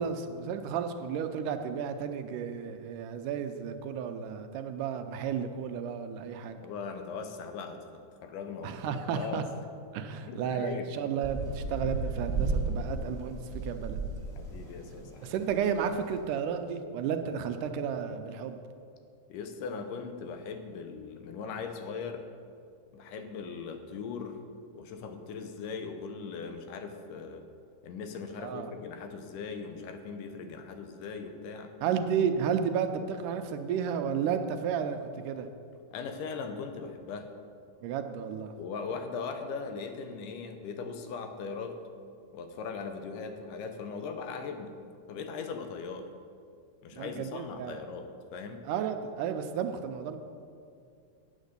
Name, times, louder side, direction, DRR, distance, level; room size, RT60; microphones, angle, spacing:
voice 1, 0.0-6.6 8.6-9.4 9.9-14.0 15.2-18.6 28.4-28.7 31.8-35.5 37.8-38.5 46.9-47.8 48.7-50.2, right 7 dB, 80° right, 8 dB, 2.2 m, -32 dB
voice 2, 6.6-9.4 10.3-10.9 14.4-15.5 19.3-22.3 22.9-24.4 24.7-27.5 27.8-31.7 35.9-37.3 38.6-41.8 42.3-44.7 45.1-46.1 46.8-48.6, left 5 dB, 80° left, 7 dB, 2.4 m, -39 dB
sound 1, 11.2-16.2, right 3 dB, ahead, 2.3 m, -34 dB
9.1 x 8.0 x 6.6 m, 2.3 s
omnidirectional pair, 3.7 m